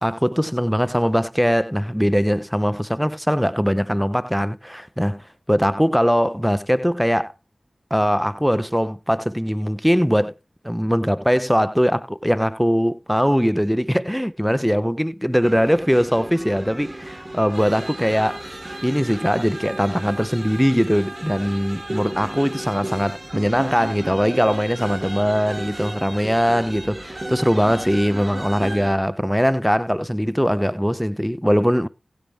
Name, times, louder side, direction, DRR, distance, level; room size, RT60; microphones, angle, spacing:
voice 1, 0.0-7.3 7.9-10.3 10.6-18.4 18.8-31.9, equal, ahead, 0.6 m, -21 dB
sound 1, 15.4-28.9, right 1 dB, 30° right, 2.7 m, -34 dB
13.0 x 8.9 x 3.3 m
cardioid pair, 45°, 0 cm